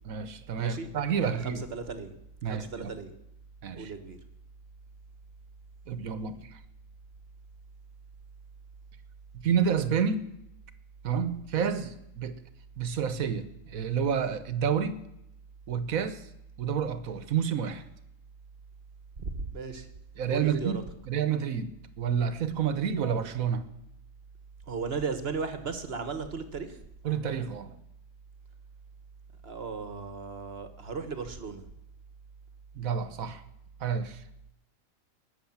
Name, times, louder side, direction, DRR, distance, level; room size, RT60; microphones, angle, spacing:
voice 1, 0.0-1.6 2.4-2.9 3.6-3.9 5.9-6.5 9.3-10.3 11.0-12.4 12.8-15.0 15.7-16.2 16.6-17.8 20.2-23.6 27.0-27.8 32.7-33.4 33.8-34.2, right 7 dB, 85° right, 12 dB, 1.5 m, -29 dB
voice 2, 0.6-0.9 1.2-2.2 2.5-3.1 3.7-4.2 19.2-19.9 20.3-20.8 24.7-26.8 29.4-31.6, right 4 dB, 50° right, 9 dB, 1.5 m, -36 dB
19.5 x 7.1 x 7.2 m, 0.81 s
omnidirectional pair, 1.4 m